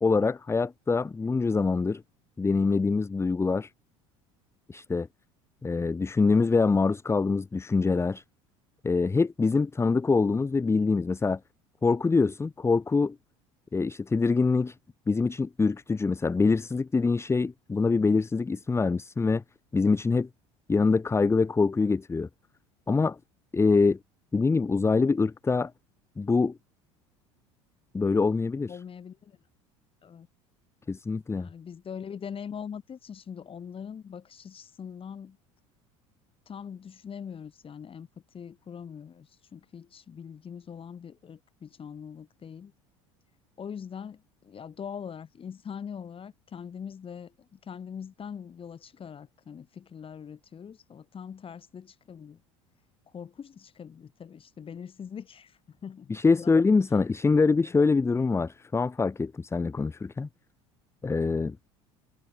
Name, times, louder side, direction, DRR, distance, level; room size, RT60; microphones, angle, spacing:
voice 1, 0.0-2.0 2.4-3.7 4.7-5.1 5.6-8.2 8.8-11.4 11.8-13.2 13.7-14.7 15.1-19.4 19.7-20.3 20.7-22.3 22.9-23.2 23.5-24.0 24.3-25.7 26.2-26.6 27.9-28.7 30.9-31.5 56.1-60.3 61.0-61.6, left 4 dB, 15° left, 0.9 m, -24 dB
voice 2, 28.7-29.4 30.0-30.3 31.4-35.4 36.5-42.7 43.6-52.4 53.1-56.5 57.3-57.4, left 7 dB, 35° left, 5.2 m, -42 dB
hypercardioid pair, 75°, 16 cm